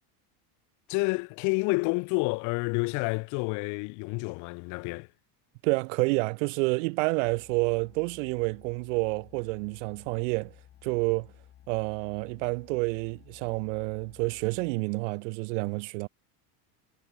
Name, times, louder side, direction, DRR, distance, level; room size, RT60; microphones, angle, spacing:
voice 1, 0.9-5.1, left 28 dB, 40° left, 1.0 m, -29 dB
voice 2, 5.6-10.5 10.8-11.3 11.7-16.1, right 29 dB, 60° right, 0.6 m, -29 dB
sound 1, 7.2-14.7, left 11 dB, 20° left, 1.3 m, -55 dB
cardioid pair, 175°, 44 cm